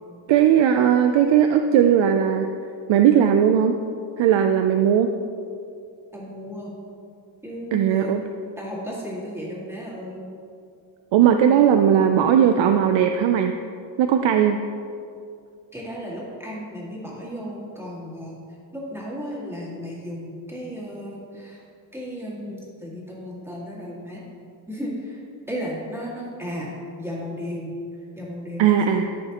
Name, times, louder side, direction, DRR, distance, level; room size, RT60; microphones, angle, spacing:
voice 1, 0.3-2.5 2.9-3.8 4.2-5.1 7.7-8.2 11.1-13.5 14.0-14.6 28.6-29.1, right 9 dB, 75° right, 6 dB, 0.5 m, -18 dB
voice 2, 6.1-6.8 7.4-8.1 8.6-10.3 15.7-18.4 18.7-21.6 21.9-24.2 24.7-25.2 25.5-26.7 27.0-29.0, equal, 5° right, -6 dB, 2.0 m, -34 dB
13.5 x 5.6 x 2.9 m, 2.4 s
wide cardioid pair, 145°, 46 cm